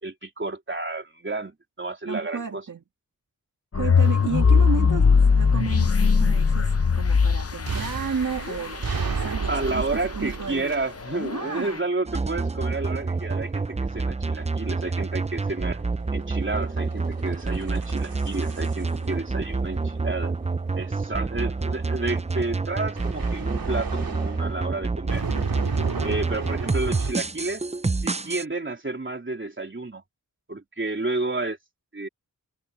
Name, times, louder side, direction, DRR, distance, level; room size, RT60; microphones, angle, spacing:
voice 1, 0.0-2.6 9.5-15.8 16.1-20.3 20.7-25.3 26.0-27.7 28.0-30.0 30.5-31.6 31.9-32.1, right 2 dB, 35° right, 3.5 m, -31 dB
voice 2, 2.1-2.8 3.7-9.8 10.2-10.8 11.3-11.8, right 5 dB, 55° right, 1.8 m, -32 dB
sound 1, 3.7-9.7 11.0-11.8, left 5 dB, 40° left, 0.8 m, -20 dB
sound 2, 7.7-11.3 13.2-21.6 23.0-24.6 25.1-27.1, right 5 dB, 75° right, 2.3 m, -33 dB
sound 3, 12.1-28.4, right 3 dB, 20° right, 0.5 m, -28 dB
wide cardioid pair, 80°, 35 cm